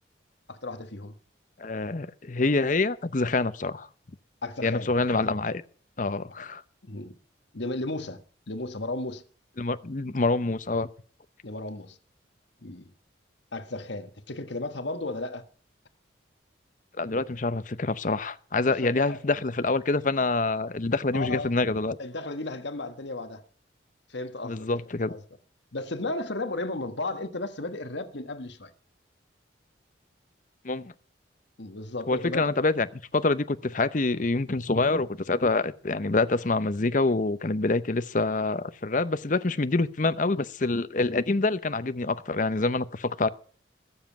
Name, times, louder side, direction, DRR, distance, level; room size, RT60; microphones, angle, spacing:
voice 1, 0.5-1.1 4.4-4.9 6.8-7.1 7.5-8.2 8.5-9.2 11.4-12.0 12.6-12.9 13.5-15.4 18.8-19.2 21.1-21.5 22.0-23.4 24.1-25.2 25.7-28.7 31.6-32.6, left 2 dB, 65° left, 1.5 m, -34 dB
voice 2, 1.6-3.9 4.6-5.6 6.0-6.6 9.6-10.9 17.0-22.0 24.4-25.1 30.6-30.9 32.1-43.3, left 3 dB, 40° left, 0.7 m, -26 dB
21.0 x 7.5 x 5.9 m
head